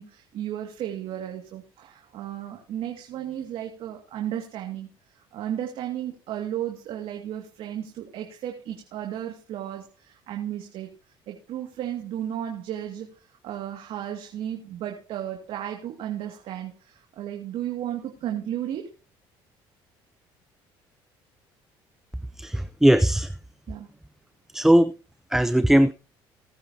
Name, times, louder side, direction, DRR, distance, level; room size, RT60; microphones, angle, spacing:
voice 1, 0.0-4.9 5.3-10.9 11.3-18.9 23.7-23.9, right 11 dB, 65° right, 2.2 m, -34 dB
voice 2, 22.4-23.3 24.5-24.9 25.3-25.9, right 1 dB, 5° right, 0.5 m, -19 dB
19.0 x 9.7 x 2.8 m
supercardioid pair, 90°, 10 cm